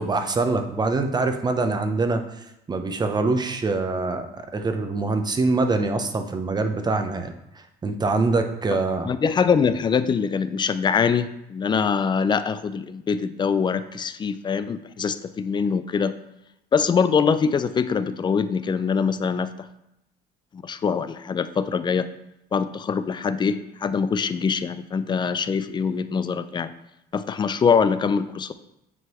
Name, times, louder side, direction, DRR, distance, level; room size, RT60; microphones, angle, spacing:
voice 1, 0.0-2.2 2.7-4.3 4.5-7.3 7.8-9.1, right 3 dB, 25° right, 6 dB, 0.7 m, -24 dB
voice 2, 9.0-16.1 16.7-19.7 20.5-22.1 22.5-26.7 27.1-28.5, left 6 dB, 25° left, 12 dB, 0.4 m, -23 dB
9.3 x 3.7 x 3.0 m, 0.86 s
cardioid pair, 110°, 17 cm